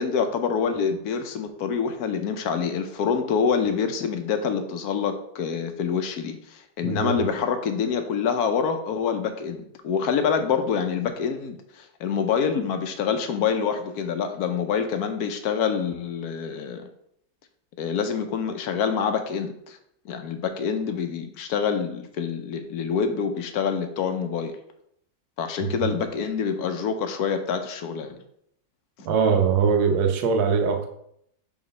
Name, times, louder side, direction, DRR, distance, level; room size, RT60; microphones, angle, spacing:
voice 1, 0.0-16.9 17.8-19.8 20.0-24.5 25.4-28.2, left 6 dB, 65° left, 7 dB, 1.0 m, -26 dB
voice 2, 6.8-7.2 25.6-25.9 29.0-30.9, right 6 dB, 75° right, 5 dB, 1.5 m, -22 dB
4.9 x 3.9 x 5.4 m, 0.73 s
omnidirectional pair, 2.0 m